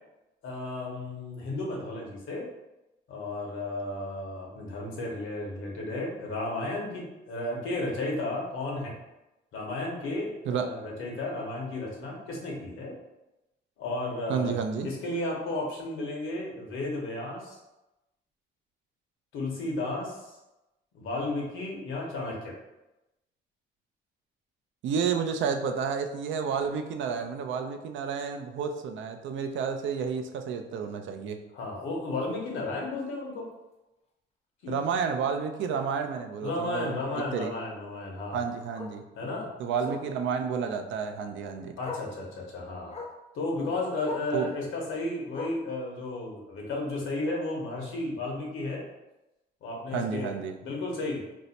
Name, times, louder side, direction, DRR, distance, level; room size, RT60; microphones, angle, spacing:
voice 1, 0.4-2.5 3.1-8.9 9.5-12.9 13.8-14.6 14.8-17.6 19.3-20.4 20.9-22.5 31.5-33.5 34.6-34.8 36.4-38.5 39.2-39.5 39.9-40.0 41.8-43.0 43.3-48.8 49.6-50.3 50.6-51.3, left 2 dB, 80° left, -1 dB, 0.9 m, -33 dB
voice 2, 14.3-14.9 24.8-31.4 34.7-37.0 37.3-37.5 38.3-39.0 39.6-41.7 44.3-44.5 49.9-50.5, right 6 dB, 70° right, 6 dB, 0.4 m, -30 dB
Bark, 32.3-32.5 32.9-33.0 33.4-33.5 33.7-33.8 35.2-35.3 37.8-37.9 38.7-39.0 39.8-40.1 41.3-41.4 41.8-42.1 42.9-43.2 44.0-44.4 45.3-45.7 46.7-46.8, left 3 dB, 30° left, 0.6 m, -40 dB
2.6 x 2.1 x 4.0 m, 0.99 s
cardioid pair, 90°, 20 cm